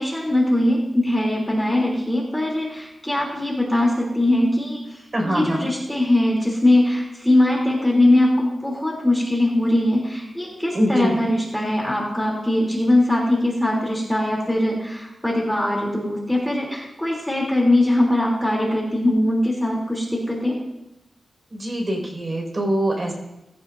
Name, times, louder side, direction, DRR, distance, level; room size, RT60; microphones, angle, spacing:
voice 1, 0.0-4.8 5.2-20.6, left 1 dB, 5° left, -3 dB, 3.2 m, -21 dB
voice 2, 5.1-5.7 10.7-11.2 21.5-23.1, right 1 dB, 35° right, 0 dB, 5.4 m, -23 dB
19.5 x 16.0 x 2.7 m, 0.91 s
wide cardioid pair, 115°, 0 cm